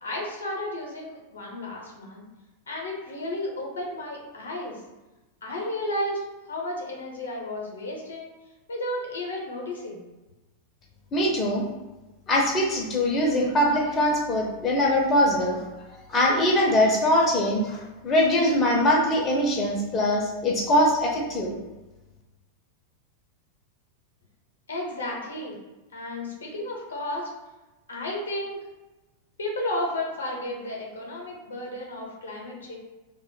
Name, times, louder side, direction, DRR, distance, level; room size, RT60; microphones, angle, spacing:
voice 1, 0.0-2.2 2.7-4.8 5.4-6.2 6.5-8.3 8.7-10.0 24.7-25.6 25.9-27.3 27.9-28.6 29.4-32.7, left 1 dB, 70° left, -1 dB, 0.6 m, -33 dB
voice 2, 11.1-11.6 12.3-15.6 16.1-21.6, left 1 dB, 25° left, -1 dB, 0.5 m, -22 dB
2.2 x 2.0 x 3.7 m, 1.1 s
figure-of-eight pair, 90°, 0 cm